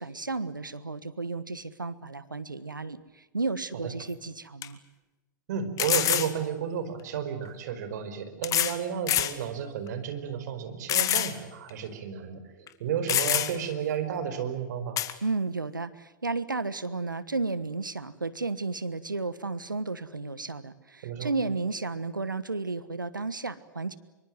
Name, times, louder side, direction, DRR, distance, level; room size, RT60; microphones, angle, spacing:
voice 1, 0.0-4.8 15.2-24.0, right 3 dB, 90° right, 16 dB, 1.3 m, -33 dB
sound 1, 4.0-4.1 4.6-4.7 5.8-6.3 7.5-7.6 8.4-8.8 9.1-9.4 9.9-10.0 10.9-11.3 11.7-11.8 12.7-12.8 13.1-13.7 15.0-15.1, left 12 dB, 35° left, 2.1 m, -26 dB
voice 2, 5.5-15.0 21.0-21.3, right 8 dB, 60° right, 9 dB, 5.0 m, -32 dB
25.5 x 24.0 x 7.8 m, 1.1 s
figure-of-eight pair, 95°, 10 cm